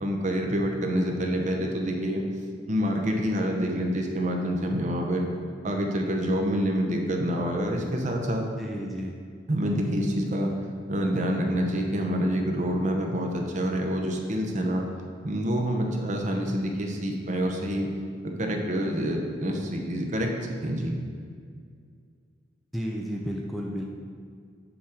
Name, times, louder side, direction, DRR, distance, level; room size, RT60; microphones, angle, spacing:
voice 1, 0.0-2.2 2.7-5.3 5.6-8.4 9.5-10.5 10.9-14.8 15.2-17.9 18.4-20.4 20.6-20.9, equal, 40° right, 2 dB, 0.8 m, -27 dB
voice 2, 8.6-9.1 22.7-23.8, equal, ahead, -2 dB, 0.5 m, -32 dB
7.1 x 3.6 x 6.3 m, 2.1 s
head